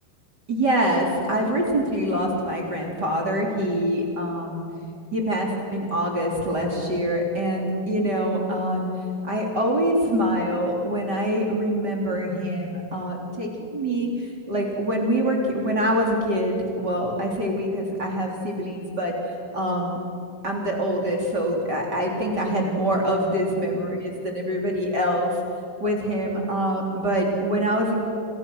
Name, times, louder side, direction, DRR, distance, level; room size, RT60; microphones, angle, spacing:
voice 1, 0.5-4.6 5.1-8.9 9.2-14.1 14.5-19.1 19.5-20.0 20.4-25.3 25.8-28.0, equal, 25° right, 0 dB, 3.2 m, -25 dB
29.5 x 26.5 x 6.4 m, 2.6 s
omnidirectional pair, 5.7 m